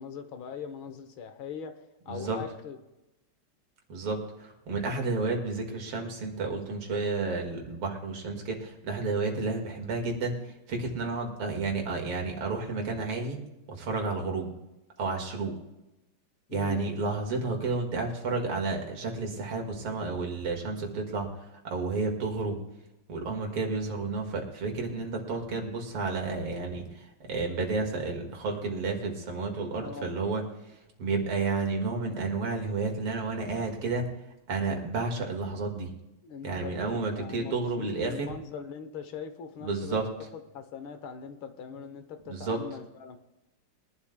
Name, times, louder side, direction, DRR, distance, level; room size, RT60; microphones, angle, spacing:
voice 1, 0.0-1.8 2.0-2.8 16.5-16.8 29.8-30.2 36.2-40.0 40.5-43.2, left 6 dB, 70° left, 8 dB, 1.7 m, -41 dB
voice 2, 2.1-2.4 3.9-13.4 13.7-14.5 15.0-15.5 16.5-22.6 23.1-34.1 34.5-35.9 36.4-38.3 39.6-40.1 42.3-42.6, right 3 dB, 75° right, 2 dB, 2.7 m, -31 dB
22.5 x 11.5 x 2.2 m, 0.98 s
omnidirectional pair, 2.4 m